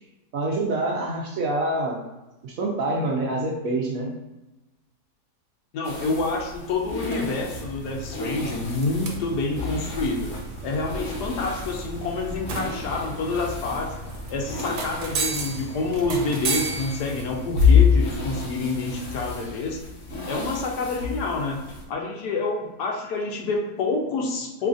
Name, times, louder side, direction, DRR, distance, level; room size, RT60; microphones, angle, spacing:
voice 1, 0.3-2.0 2.4-4.1, right 2 dB, 65° right, -1 dB, 0.9 m, -26 dB
voice 2, 5.7-10.3 10.6-13.9 14.3-19.8 20.3-21.6 21.9-24.7, left 3 dB, 80° left, 1 dB, 1.2 m, -28 dB
sound 1, 5.8-21.8, left 6 dB, 60° left, 1.1 m, -28 dB
sound 2, 7.5-19.5, right 4 dB, 85° right, 1.2 m, -35 dB
3.2 x 2.4 x 3.7 m, 1.0 s
omnidirectional pair, 1.8 m